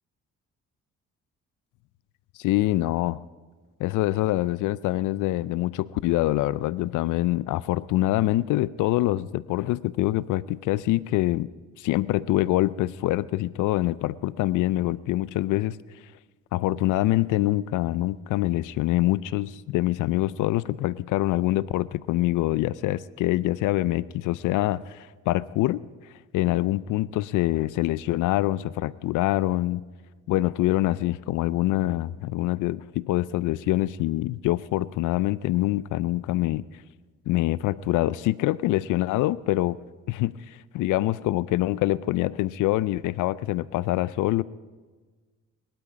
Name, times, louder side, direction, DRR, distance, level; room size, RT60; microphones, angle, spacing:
voice 1, 2.4-3.2 3.8-11.5 11.8-15.8 16.5-25.8 26.3-29.8 30.3-36.6 37.3-39.8 40.1-44.4, left 16 dB, 85° left, 19 dB, 0.5 m, -25 dB
21.5 x 12.5 x 5.1 m, 1.4 s
cardioid pair, 90°, 30 cm